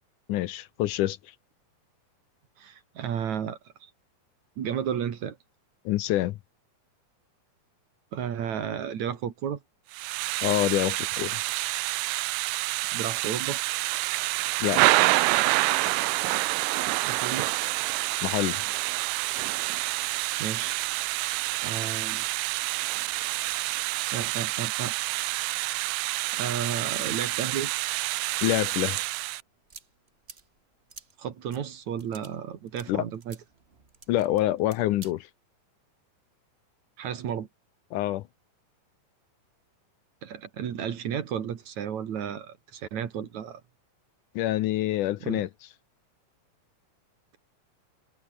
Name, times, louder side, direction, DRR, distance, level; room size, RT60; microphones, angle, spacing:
voice 1, 0.3-1.2 5.9-6.4 10.4-11.4 14.6-14.8 18.2-18.6 28.4-29.1 32.9-33.0 34.1-35.3 37.9-38.2 44.4-45.5, left 15 dB, 75° left, 2.2 m, -26 dB
voice 2, 2.6-3.9 4.6-5.4 8.1-9.6 12.9-13.6 17.0-17.5 20.4-20.8 21.6-22.2 24.1-25.2 26.3-27.7 31.2-33.4 37.0-37.5 40.2-43.6 45.2-45.4, right 8 dB, 60° right, 3.1 m, -33 dB
Thunder / Rain, 9.9-29.4, right 21 dB, 80° right, 2.1 m, -28 dB
sound 1, 29.3-35.1, right 4 dB, 35° right, 1.0 m, -52 dB
omnidirectional pair, 3.9 m